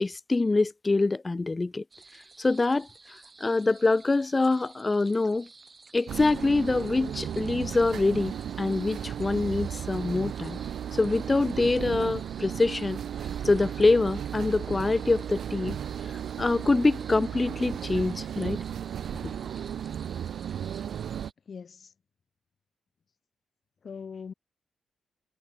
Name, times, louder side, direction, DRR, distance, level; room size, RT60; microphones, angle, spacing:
voice 1, 0.0-1.8 2.4-2.9 3.4-5.5 5.9-10.6 10.9-13.0 13.4-15.8 16.4-18.6, left 3 dB, 25° left, 0.4 m, -25 dB
sound 1, 1.9-21.3, right 3 dB, 30° right, 2.1 m, -53 dB
sound 2, 6.1-21.3, right 9 dB, 80° right, 0.6 m, -35 dB
voice 2, 21.5-21.9 23.8-24.3, left 6 dB, 50° left, 1.0 m, -41 dB
cardioid pair, 105°, 0 cm